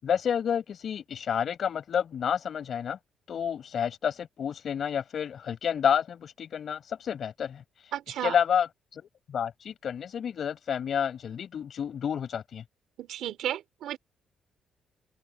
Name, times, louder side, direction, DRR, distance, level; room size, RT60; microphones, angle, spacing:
voice 1, 0.0-3.0 3.3-7.9 8.2-9.0 9.3-12.6, left 8 dB, 60° left, 5.0 m, -30 dB
voice 2, 7.9-8.3 13.0-14.0, right 11 dB, 80° right, 3.3 m, -33 dB
open air
cardioid pair, 90°, 0 cm